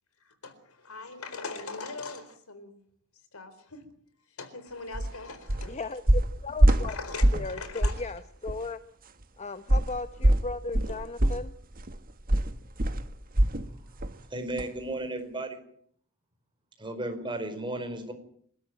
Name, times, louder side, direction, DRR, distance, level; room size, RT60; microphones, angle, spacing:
voice 1, 0.2-2.7 3.3-3.8 4.4-5.8 6.7-8.0 10.9-11.0, left 3 dB, 75° left, 11 dB, 4.2 m, -41 dB
sound 1, 4.9-5.1 5.5-5.7 6.1-7.5 7.8-8.1 8.5-8.6 9.7-13.7 14.0-14.2 14.6-14.7, right 1 dB, 40° right, 1.5 m, -24 dB
voice 2, 5.7-6.9 7.3-8.8 9.4-11.5, left 3 dB, 30° left, 11 dB, 0.9 m, -36 dB
voice 3, 14.3-15.6 16.8-18.1, right 1 dB, 20° right, 6 dB, 4.9 m, -34 dB
27.5 x 13.0 x 9.2 m, 0.63 s
head